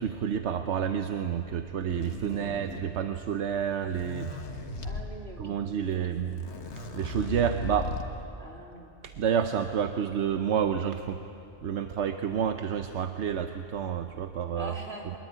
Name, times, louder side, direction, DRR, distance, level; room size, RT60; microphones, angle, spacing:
voice 1, 0.0-4.3 5.4-6.4 6.9-7.9 9.0-11.2 11.6-14.7, right 8 dB, 85° right, 8 dB, 1.1 m, -29 dB
sound 1, 1.9-3.1 3.7-5.1 5.9-6.0 6.2-8.2, left 3 dB, 90° left, 1.9 m, -37 dB
voice 2, 2.3-2.9 4.8-5.6 6.0-6.4 8.4-8.9 14.5-15.2, right 1 dB, 65° right, 0 dB, 3.4 m, -44 dB
23.0 x 22.0 x 9.2 m, 2.7 s
omnidirectional pair, 1.1 m